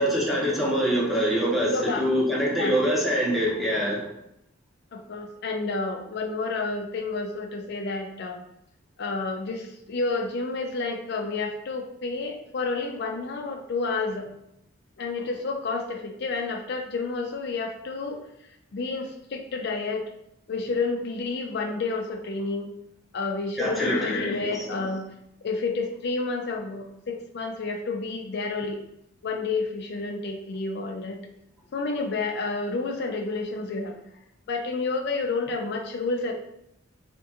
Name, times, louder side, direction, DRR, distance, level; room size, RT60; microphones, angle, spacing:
voice 1, 0.0-4.0 23.6-24.6, equal, ahead, -4 dB, 0.6 m, -25 dB
voice 2, 1.7-2.1 2.5-2.8 4.9-8.4 9.0-14.3 15.0-20.0 20.5-22.7 23.1-25.1 25.4-28.8 29.2-31.2 31.7-34.0 34.5-36.3, left 3 dB, 55° left, 3 dB, 0.4 m, -30 dB
3.5 x 2.2 x 2.7 m, 0.80 s
head